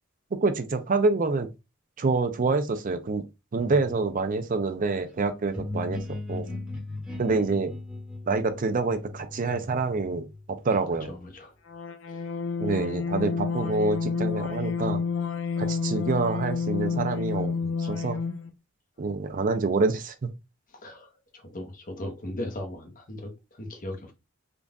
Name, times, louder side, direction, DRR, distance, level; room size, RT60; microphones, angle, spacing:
voice 1, 0.3-1.5 2.0-3.2 3.5-6.0 6.3-6.5 7.2-7.7 8.3-11.1 12.6-15.0 15.6-17.5 17.8-18.2 19.0-20.3, right 3 dB, 40° right, 0.5 m, -26 dB
sound 1, 5.5-11.2, left 2 dB, 5° right, 1.2 m, -38 dB
voice 2, 10.7-11.5 12.1-12.3 17.8-17.9 20.7-24.1, left 1 dB, 40° left, 1.0 m, -38 dB
sound 2, 11.7-18.5, left 5 dB, 75° left, 0.6 m, -29 dB
3.9 x 2.4 x 3.5 m
head